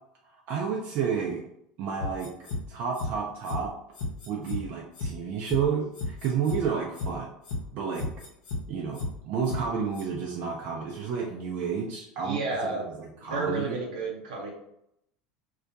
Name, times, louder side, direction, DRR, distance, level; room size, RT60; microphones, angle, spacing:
voice 1, 0.3-1.5 1.8-2.3 2.7-3.7 4.3-7.3 7.7-8.1 8.7-12.4 12.7-13.8, right 6 dB, 55° right, -2 dB, 0.4 m, -31 dB
sound 1, 2.0-2.6 2.9-3.1 3.4-3.6 3.9-4.6 4.9-5.1 5.4-5.6 5.9-6.6 6.9-7.1 7.4-7.6 7.9-8.6 8.9-9.1 9.4-9.6 9.9-10.0, left 2 dB, 70° left, 0.7 m, -32 dB
voice 2, 12.2-12.9 13.1-14.5, right 3 dB, 80° right, -1 dB, 0.8 m, -31 dB
2.2 x 2.1 x 2.6 m, 0.77 s
hypercardioid pair, 85°, 4 cm